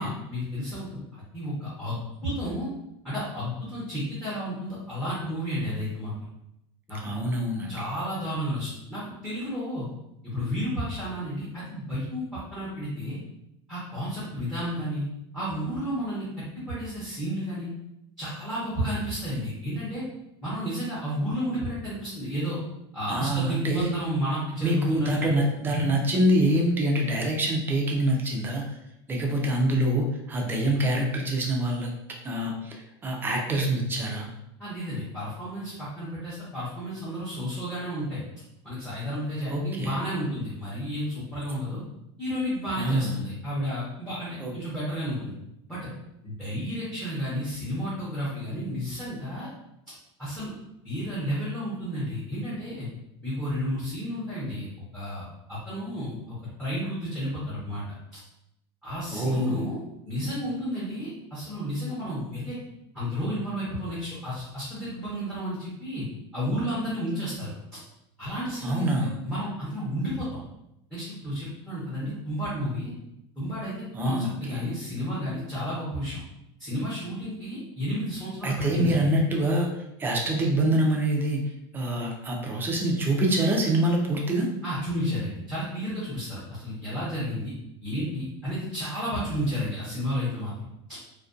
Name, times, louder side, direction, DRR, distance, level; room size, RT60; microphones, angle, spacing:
voice 1, 0.0-2.7 3.0-6.1 6.9-7.0 7.7-9.9 10.2-13.2 13.7-15.1 15.3-16.3 16.6-17.7 18.2-20.0 20.4-22.6 22.9-25.3 34.6-38.2 38.6-41.8 42.2-45.3 45.7-45.9 46.2-49.5 50.2-50.5 50.8-52.9 53.2-54.7 54.9-57.8 58.8-59.8 60.0-62.6 62.9-66.1 66.3-67.5 68.2-69.0 69.2-70.4 70.9-72.9 73.4-76.2 76.6-79.1 84.6-87.5 87.8-90.5, equal, 5° left, -9 dB, 0.7 m, -32 dB
voice 2, 7.0-7.8 23.1-23.9 24.6-28.6 29.1-31.9 32.2-34.3 39.5-40.0 42.8-43.2 44.4-44.5 59.1-59.7 68.6-69.2 73.9-74.6 78.4-79.7 80.0-81.4 81.7-84.5, right 1 dB, 15° right, 0 dB, 0.4 m, -25 dB
2.4 x 2.2 x 2.4 m, 0.83 s
supercardioid pair, 155°, 14 cm